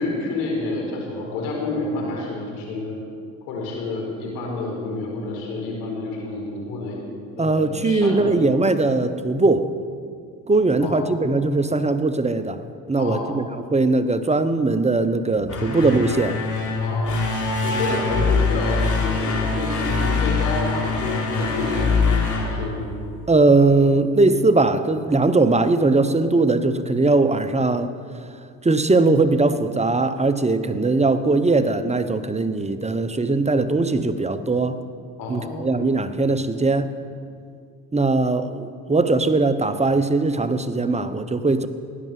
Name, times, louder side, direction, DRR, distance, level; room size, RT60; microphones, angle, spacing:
voice 1, 0.0-3.0 3.4-7.0 7.4-8.4 10.8-11.0 13.0-13.4 16.8-22.8 35.2-35.8, left 3 dB, 90° left, -1 dB, 4.3 m, -29 dB
voice 2, 7.4-9.7 10.5-16.4 23.3-27.9 28.6-34.8 35.3-36.9 37.9-41.7, right 3 dB, 15° right, 10 dB, 1.0 m, -20 dB
sound 1, 15.4-23.3, left 4 dB, 50° left, 3.5 m, -23 dB
16.0 x 11.0 x 7.7 m, 2.3 s
supercardioid pair, 75°, 39 cm